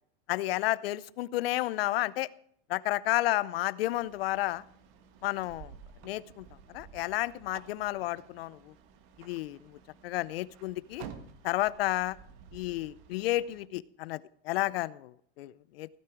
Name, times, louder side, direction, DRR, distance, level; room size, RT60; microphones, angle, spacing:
voice 1, 0.3-2.3 2.7-4.6 5.2-5.7 6.0-8.7 9.2-11.0 11.4-12.2 12.5-15.9, left 16 dB, 75° left, 19 dB, 0.6 m, -32 dB
sound 1, 3.9-13.7, right 7 dB, 50° right, 1.5 m, -52 dB
16.0 x 9.7 x 4.6 m, 0.66 s
supercardioid pair, 140°, 30 cm